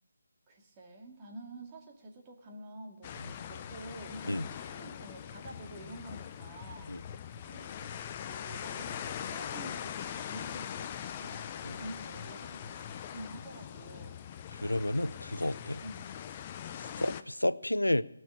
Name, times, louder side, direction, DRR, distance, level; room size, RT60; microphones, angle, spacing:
voice 1, 0.5-7.0 7.4-14.2 15.8-16.2 16.7-17.0, right 1 dB, 20° right, 2.1 m, -48 dB
sound 1, 3.0-17.2, left 9 dB, 25° left, 0.6 m, -42 dB
voice 2, 14.5-15.8 17.0-18.0, left 1 dB, 85° left, 0.5 m, -31 dB
19.0 x 6.5 x 9.6 m
figure-of-eight pair, 150°, 0 cm